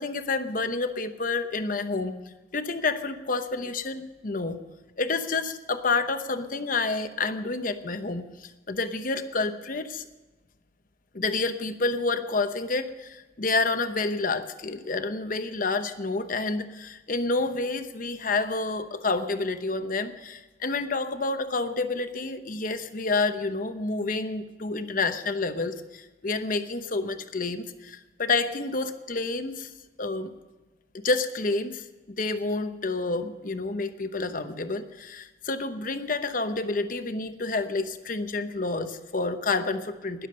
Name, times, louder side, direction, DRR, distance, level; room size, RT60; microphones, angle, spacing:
voice 1, 0.0-2.2 2.5-4.6 5.0-10.0 11.1-29.7 30.0-30.3 30.9-40.3, left 3 dB, 50° left, 9 dB, 0.9 m, -29 dB
20.5 x 7.3 x 5.2 m, 1.2 s
head